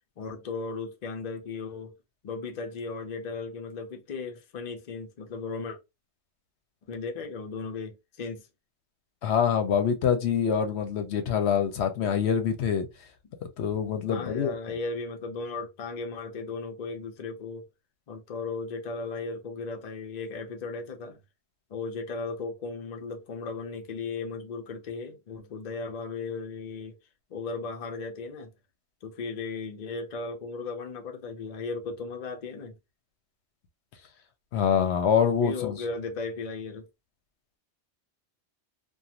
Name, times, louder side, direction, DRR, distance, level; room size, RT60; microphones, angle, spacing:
voice 1, 0.2-1.9 2.2-5.8 6.9-8.5 14.1-17.7 18.1-21.2 21.7-27.0 27.3-28.5 29.0-32.8 35.4-36.9, left 4 dB, 50° left, 0.6 m, -36 dB
voice 2, 9.2-12.9 13.6-14.5 34.5-35.8, left 7 dB, 70° left, 0.9 m, -25 dB
2.5 x 2.3 x 2.9 m
omnidirectional pair, 1.2 m